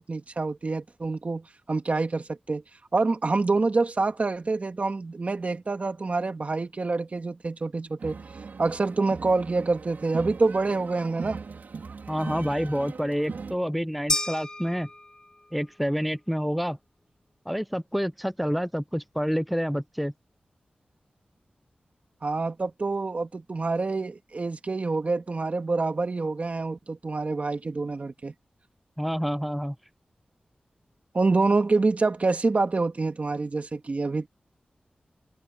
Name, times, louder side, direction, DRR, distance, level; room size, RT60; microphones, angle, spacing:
voice 1, 0.0-2.6 2.9-8.2 8.6-11.4 22.2-28.3 31.1-34.3, right 3 dB, 50° right, 2.5 m, -26 dB
sound 1, 8.0-13.6, right 5 dB, 90° right, 4.6 m, -40 dB
voice 2, 12.1-14.9 15.5-16.8 17.5-20.1 29.0-29.7, equal, ahead, 0.5 m, -28 dB
sound 2, 14.1-15.5, left 2 dB, 25° left, 3.3 m, -31 dB
wide cardioid pair, 80°, 3 cm